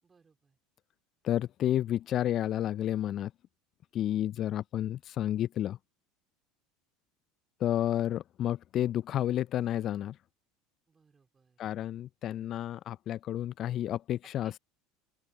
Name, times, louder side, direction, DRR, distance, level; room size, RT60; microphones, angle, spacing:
voice 1, 0.0-0.6 10.9-11.6 14.2-14.6, right 5 dB, 25° right, 4.0 m, -65 dB
voice 2, 1.2-3.3 3.9-5.8 7.6-10.2 11.6-14.6, left 12 dB, 45° left, 0.5 m, -31 dB
open air
hypercardioid pair, 75°, 0 cm